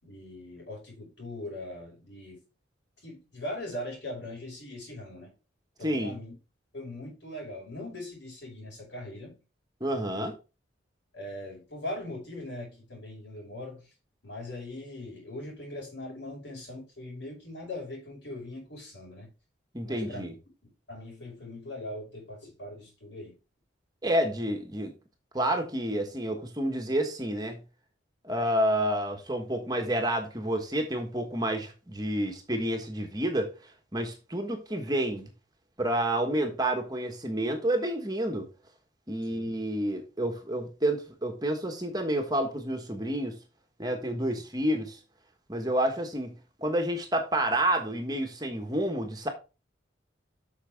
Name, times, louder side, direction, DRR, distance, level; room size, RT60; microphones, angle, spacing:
voice 1, 0.0-2.4 3.0-5.3 5.8-6.3 6.7-9.4 9.9-10.3 11.1-13.9 14.2-19.3 19.8-20.3 20.9-23.4 39.2-39.6, left 1 dB, 65° left, 5.4 m, -40 dB
voice 2, 5.8-6.1 9.8-10.3 19.7-20.3 24.0-24.9 25.3-27.6 28.2-33.5 33.9-35.3 35.8-38.5 39.1-43.4 43.8-45.0 45.5-46.3 46.6-49.3, right 1 dB, 20° right, 1.3 m, -29 dB
8.3 x 6.1 x 3.5 m
head